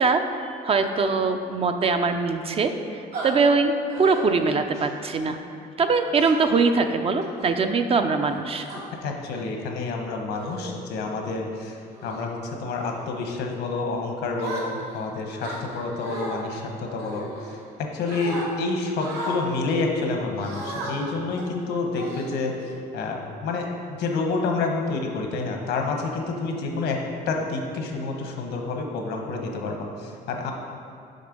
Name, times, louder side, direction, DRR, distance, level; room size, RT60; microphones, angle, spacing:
voice 1, 0.0-3.7 4.0-5.4 5.8-8.7, right 4 dB, 35° right, 7 dB, 0.5 m, -22 dB
sound 1, 3.1-3.3 3.9-4.2 4.7-5.0 6.1-6.6 7.2-7.5 8.2-8.8 9.6-9.8 10.3-10.7 11.2-11.4 11.9-12.3 12.8-13.1 14.4-15.0 15.4-16.4 17.0-17.8 18.1-18.4 19.0-19.4 20.4-20.9 21.4-21.5 22.0-22.7, right 2 dB, 80° right, 1.7 m, -36 dB
voice 2, 9.0-11.8 12.0-22.5 22.9-27.0 27.3-30.5, left 3 dB, 80° left, 2 dB, 1.1 m, -28 dB
6.5 x 5.3 x 5.2 m, 2.5 s
cardioid pair, 110°, 17 cm